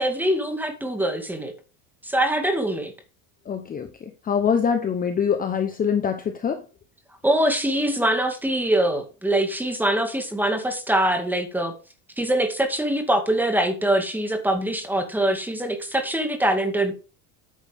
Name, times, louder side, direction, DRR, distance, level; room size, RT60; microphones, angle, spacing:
voice 1, 0.0-1.5 2.0-2.9 7.2-11.7 12.2-16.9, right 1 dB, 5° right, 2.1 m, -23 dB
voice 2, 3.5-3.9 4.2-6.6, left 7 dB, 20° left, 0.9 m, -24 dB
11.0 x 9.3 x 3.6 m
cardioid pair, 145°, 39 cm